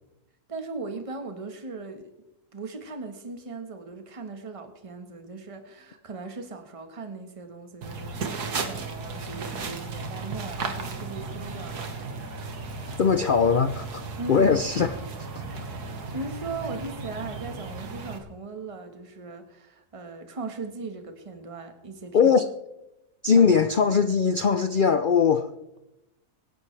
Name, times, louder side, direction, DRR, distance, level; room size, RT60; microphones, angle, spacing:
voice 1, 0.5-2.0 2.5-12.2 14.2-14.8 15.5-22.3 23.3-23.5, right 3 dB, 20° right, 6 dB, 1.3 m, -38 dB
sound 1, 7.8-18.2, right 4 dB, 85° right, 2.0 m, -35 dB
voice 2, 13.0-14.0 14.3-14.9 22.1-22.5 23.2-25.5, left 6 dB, 80° left, 9 dB, 0.4 m, -20 dB
24.5 x 10.5 x 3.3 m, 0.91 s
omnidirectional pair, 1.7 m